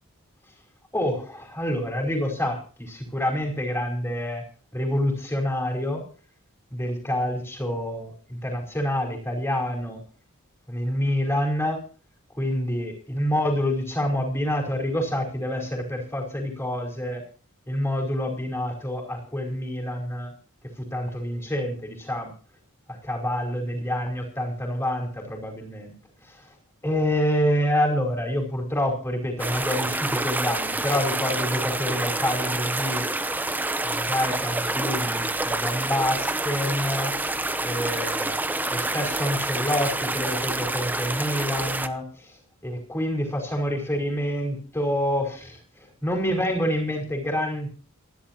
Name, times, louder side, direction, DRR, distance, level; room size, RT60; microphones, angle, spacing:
voice 1, 0.9-4.4 4.7-6.0 6.7-10.0 10.7-11.8 12.3-17.2 17.7-20.3 20.6-22.3 22.9-25.9 26.2-26.5 26.8-33.0 33.8-37.1 37.6-38.3 38.7-42.4 42.6-47.7, left 1 dB, 10° left, 1 dB, 4.8 m, -27 dB
sound 1, 29.4-41.9, right 2 dB, 10° right, 0.7 m, -27 dB
27.5 x 11.5 x 3.0 m, 0.40 s
head